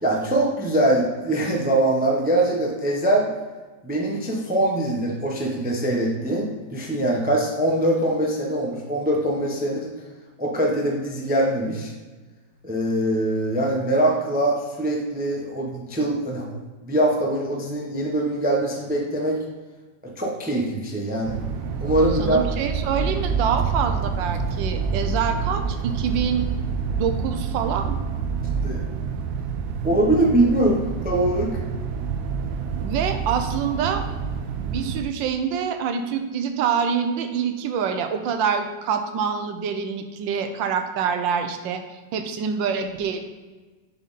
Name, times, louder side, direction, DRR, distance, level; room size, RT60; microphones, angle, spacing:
voice 1, 0.0-3.3 3.8-9.9 10.4-11.9 12.6-19.4 20.2-21.4 21.8-22.4 23.1-23.2 28.6-28.8 29.8-31.5, right 1 dB, 10° right, -1 dB, 0.5 m, -23 dB
sound 1, 21.2-35.0, right 5 dB, 70° right, 0.9 m, -27 dB
voice 2, 22.2-26.5 27.0-28.0 32.7-34.0 34.6-41.8 42.1-43.2, right 7 dB, 90° right, 7 dB, 1.4 m, -26 dB
7.1 x 4.3 x 4.1 m, 1.3 s
omnidirectional pair, 2.0 m